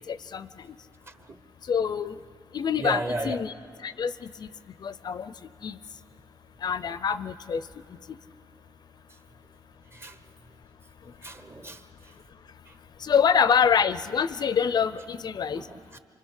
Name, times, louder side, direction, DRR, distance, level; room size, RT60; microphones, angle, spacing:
voice 1, 0.1-0.5 1.7-2.2 2.5-3.5 3.8-4.5 4.8-5.3 5.6-5.8 6.6-7.6 13.0-15.6, left 7 dB, 50° left, 15 dB, 0.5 m, -25 dB
voice 2, 1.1-1.4 2.8-3.4 9.9-10.2 11.2-11.8 12.7-12.8 15.5-16.0, right 1 dB, 30° right, 10 dB, 1.2 m, -34 dB
27.5 x 24.5 x 6.4 m, 2.4 s
cardioid pair, 105°, 9 cm